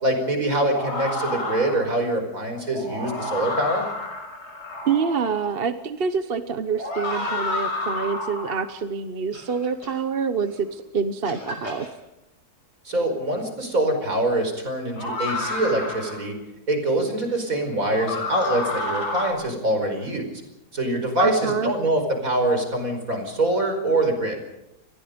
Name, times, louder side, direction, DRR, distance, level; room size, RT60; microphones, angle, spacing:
voice 1, 0.0-3.9 12.9-16.3 16.7-20.3 20.7-24.4, right 1 dB, 55° right, 5 dB, 5.4 m, -24 dB
sound 1, 0.7-2.0 2.6-5.5 6.7-8.7 9.3-9.9 10.7-10.8 11.2-11.9 13.3-13.4 15.0-16.2 17.8-19.3, left 2 dB, 80° left, 6.3 m, -30 dB
voice 2, 4.9-11.9 21.2-21.7, right 6 dB, 40° right, 10 dB, 1.1 m, -26 dB
29.0 x 21.0 x 5.2 m, 0.89 s
omnidirectional pair, 1.7 m